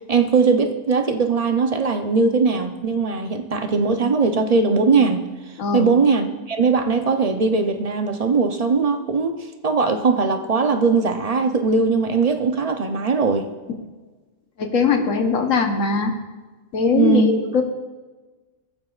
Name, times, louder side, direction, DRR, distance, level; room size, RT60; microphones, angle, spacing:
voice 1, 0.1-5.3 5.7-9.4 9.6-13.5 17.0-17.3, right 4 dB, 40° right, 6 dB, 0.6 m, -20 dB
voice 2, 5.6-5.9 14.6-16.1 16.7-17.6, left 5 dB, 85° left, 4 dB, 1.4 m, -20 dB
18.0 x 8.8 x 2.4 m, 1.3 s
omnidirectional pair, 1.3 m